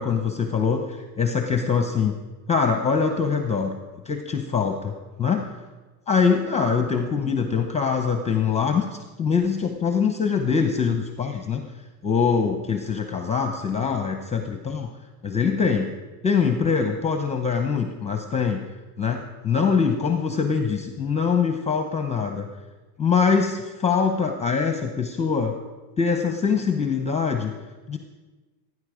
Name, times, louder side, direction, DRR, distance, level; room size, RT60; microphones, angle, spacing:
voice 1, 0.0-2.1 2.5-3.8 4.0-5.5 6.1-8.8 9.2-11.7 12.0-15.0 15.2-15.9 16.2-18.6 19.0-22.5 23.0-25.5 26.0-27.5 27.9-28.0, left 6 dB, 15° left, 6 dB, 0.7 m, -23 dB
17.0 x 9.7 x 4.9 m, 1.2 s
supercardioid pair, 140°, 47 cm